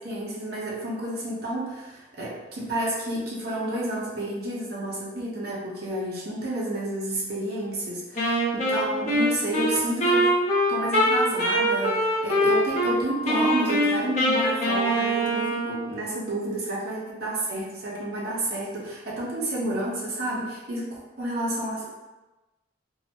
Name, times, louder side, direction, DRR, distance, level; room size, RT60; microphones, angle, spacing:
voice 1, 0.0-10.4 10.7-21.9, right 1 dB, 55° right, -6 dB, 0.9 m, -30 dB
Wind instrument woodwind instrument, 8.2-12.9 13.3-15.9, equal, 40° left, 0.8 m, -23 dB
3.9 x 2.0 x 2.9 m, 1.1 s
head